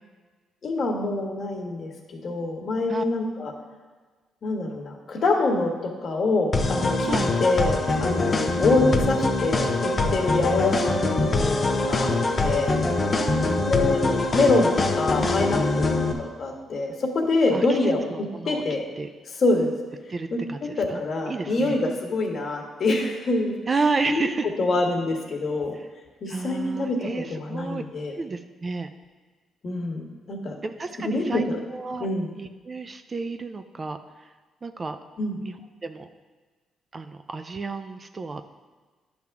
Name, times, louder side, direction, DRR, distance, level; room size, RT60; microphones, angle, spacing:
voice 1, 0.6-1.9 2.2-3.5 4.4-12.8 13.7-14.0 14.3-18.1 18.4-18.9 19.4-19.7 20.6-23.5 24.1-24.2 24.6-25.7 26.2-28.1 29.6-30.5 31.0-31.6 32.0-32.3 35.2-35.4, left 2 dB, 50° left, 1 dB, 1.5 m, -25 dB
sound 1, 6.5-16.1, left 2 dB, 30° left, 0.8 m, -23 dB
voice 2, 13.1-13.6 17.5-18.6 19.0-19.1 20.1-21.8 23.7-24.5 25.7-25.9 26.3-27.8 28.2-28.9 30.6-31.4 31.7-32.1 32.4-34.3 34.6-35.0 35.4-36.1 36.9-38.4, right 4 dB, 35° right, 8 dB, 0.5 m, -31 dB
10.5 x 3.6 x 5.9 m, 1.4 s
cardioid pair, 90°, 0 cm